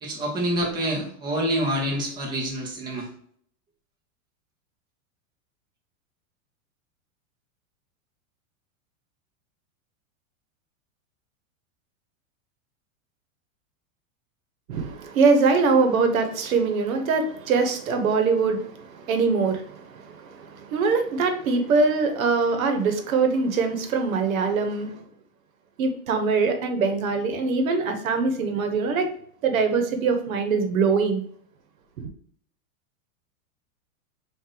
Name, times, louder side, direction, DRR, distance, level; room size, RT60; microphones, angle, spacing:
voice 1, 0.0-3.1, right 1 dB, 10° right, 0.8 m, -27 dB
voice 2, 14.7-25.0 25.8-29.1 29.4-31.2, right 4 dB, 80° right, 1.1 m, -23 dB
5.9 x 2.6 x 3.2 m
supercardioid pair, 165°, 40 cm